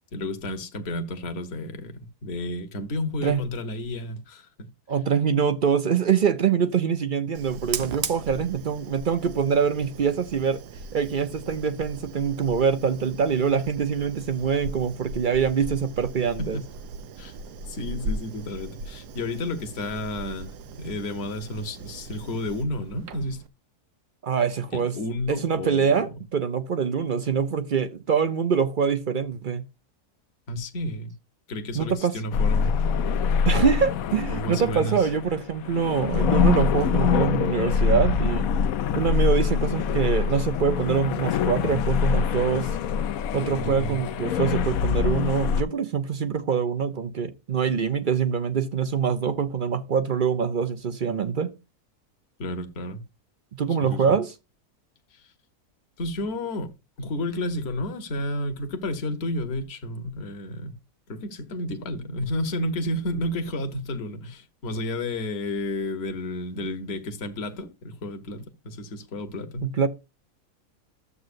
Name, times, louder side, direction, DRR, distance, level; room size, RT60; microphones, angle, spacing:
voice 1, 0.1-4.7 16.4-16.6 17.2-17.4 17.7-23.4 24.7-26.0 30.5-31.1 31.5-32.8 34.3-35.1 43.5-44.0 52.4-53.0 53.8-54.2 56.0-60.7 61.1-69.7, left 1 dB, 45° left, 1.3 m, -31 dB
voice 2, 4.9-10.6 10.9-16.6 24.2-25.0 25.3-29.6 31.7-32.1 33.4-38.5 38.9-42.8 43.3-51.5 53.5-54.3 69.6-69.9, right 6 dB, 55° right, 0.6 m, -24 dB
Fire, 7.3-23.5, right 3 dB, 85° right, 1.5 m, -38 dB
sound 1, 32.3-45.6, left 6 dB, 70° left, 1.0 m, -24 dB
12.5 x 7.6 x 2.5 m
omnidirectional pair, 1.7 m